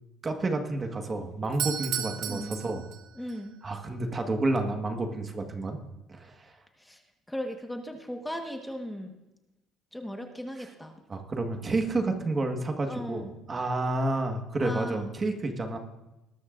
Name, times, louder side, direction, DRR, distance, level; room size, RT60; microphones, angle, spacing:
voice 1, 0.2-2.9 3.6-5.8 6.1-6.5 11.1-15.8, right 2 dB, 25° right, 4 dB, 1.6 m, -30 dB
Doorbell, 1.4-3.4, right 10 dB, 65° right, 1.0 m, -34 dB
voice 2, 2.3-2.6 3.1-3.5 6.8-7.0 7.3-9.1 9.9-10.9 12.9-13.3 14.6-15.1, equal, 5° left, 3 dB, 1.4 m, -37 dB
20.0 x 13.0 x 2.6 m, 0.98 s
cardioid pair, 115°, 0 cm